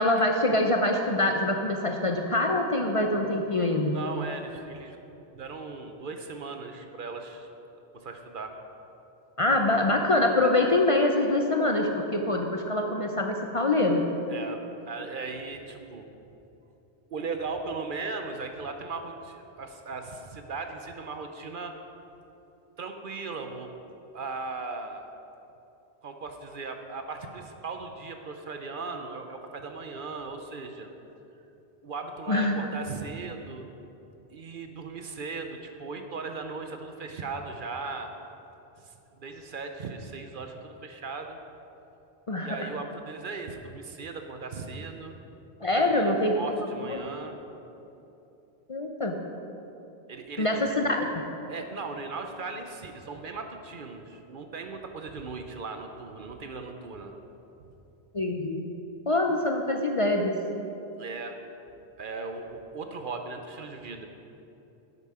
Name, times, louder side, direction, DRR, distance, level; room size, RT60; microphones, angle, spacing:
voice 1, 0.0-4.0 9.4-14.0 32.3-32.5 42.3-42.6 45.6-46.4 46.9-47.0 48.7-49.2 50.4-51.1 58.1-58.6 59.1-60.4, left 2 dB, 40° left, 2 dB, 0.6 m, -24 dB
voice 2, 3.9-5.1 5.3-7.5 7.9-8.5 14.3-16.0 17.1-21.7 22.8-23.7 24.1-25.0 26.0-30.9 31.8-33.6 34.3-38.1 38.8-41.4 42.4-45.2 45.7-47.4 50.1-50.6 51.5-57.1 61.0-61.4 62.0-64.1, right 4 dB, 55° right, 5 dB, 0.8 m, -38 dB
11.0 x 8.1 x 4.9 m, 3.0 s
omnidirectional pair, 1.1 m